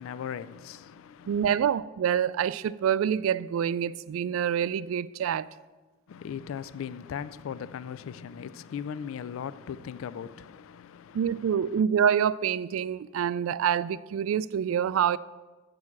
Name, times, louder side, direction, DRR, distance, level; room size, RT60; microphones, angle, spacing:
voice 1, 0.0-1.8 6.1-11.8, left 7 dB, 80° left, 0.3 m, -39 dB
voice 2, 1.3-5.5 11.1-15.2, right 8 dB, 85° right, 0.3 m, -26 dB
8.3 x 6.5 x 6.0 m
head